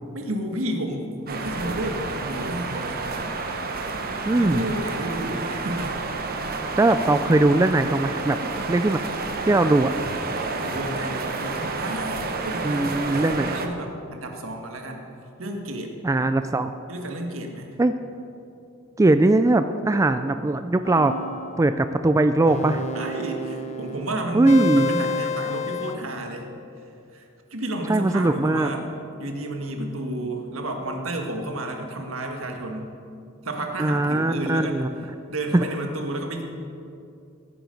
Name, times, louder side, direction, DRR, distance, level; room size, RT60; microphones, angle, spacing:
voice 1, 0.1-3.3 4.4-6.1 10.5-13.0 13.2-15.0 15.4-16.0 16.9-17.7 22.9-26.5 27.1-28.9 29.1-32.9 33.4-34.8 35.3-36.4, right 1 dB, 75° right, 3 dB, 1.6 m, -31 dB
sound 1, 1.3-13.7, right 3 dB, 45° right, 1.0 m, -30 dB
voice 2, 4.3-4.6 6.8-8.4 8.7-9.0 9.5-9.9 12.6-13.6 16.0-16.7 17.8-17.9 19.0-21.1 21.6-22.8 24.3-25.0 27.9-28.7 33.8-34.9 35.5-35.7, right 2 dB, 15° right, 9 dB, 0.3 m, -20 dB
sound 2, 20.9-21.7 22.5-26.0, left 2 dB, 35° left, 0.9 m, -30 dB
15.5 x 9.1 x 5.3 m, 2.6 s
head